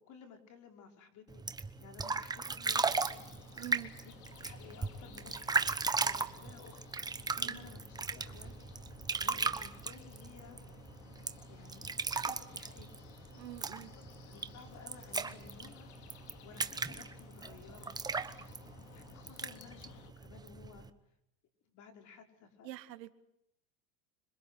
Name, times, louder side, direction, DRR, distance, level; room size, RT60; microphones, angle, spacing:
voice 1, 0.0-3.3 4.3-6.8 7.4-8.5 9.2-10.6 11.5-11.9 12.3-12.9 13.7-16.2 16.4-18.0 18.9-20.9 21.7-22.7, left 6 dB, 35° left, 5 dB, 5.3 m, -55 dB
sound 1, 1.3-20.9, right 4 dB, 10° right, 1.1 m, -37 dB
sound 2, 2.6-20.1, left 10 dB, 65° left, 3.1 m, -57 dB
voice 2, 3.6-3.9 7.4-7.7 13.4-13.9 22.6-23.1, right 14 dB, 85° right, 12 dB, 2.0 m, -46 dB
26.0 x 25.5 x 8.2 m, 0.78 s
supercardioid pair, 140°, 49 cm